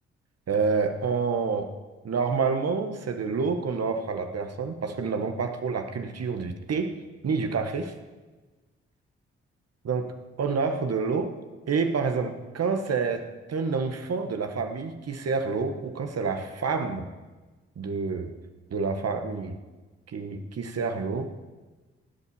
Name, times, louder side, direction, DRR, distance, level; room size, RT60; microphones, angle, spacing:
voice 1, 0.5-1.7 2.0-6.9 7.2-7.9 9.8-11.3 11.7-17.1 17.8-18.3 18.7-19.6 20.1-21.3, right 5 dB, 55° right, 6 dB, 1.6 m, -28 dB
15.5 x 8.5 x 7.2 m, 1.2 s
hypercardioid pair, 40°, 29 cm